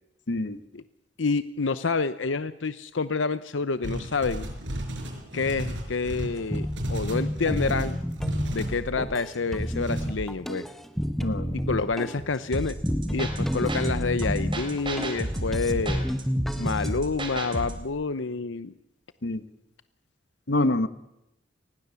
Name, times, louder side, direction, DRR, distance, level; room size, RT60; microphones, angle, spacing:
voice 1, 0.3-0.6 11.2-11.6 19.2-19.4 20.5-20.9, left 2 dB, 65° left, 12 dB, 1.2 m, -26 dB
voice 2, 1.2-4.5 5.3-8.0 8.5-10.7 11.5-12.8 13.1-16.1 16.6-18.7, left 4 dB, 90° left, 13 dB, 0.8 m, -28 dB
sound 1, 3.8-8.7 9.8-10.1, equal, 80° right, 5.8 m, -34 dB
sound 2, 6.5-17.0, equal, ahead, 1.1 m, -30 dB
sound 3, 12.5-17.9, right 1 dB, 30° right, 3.6 m, -32 dB
28.0 x 20.0 x 7.0 m, 0.88 s
head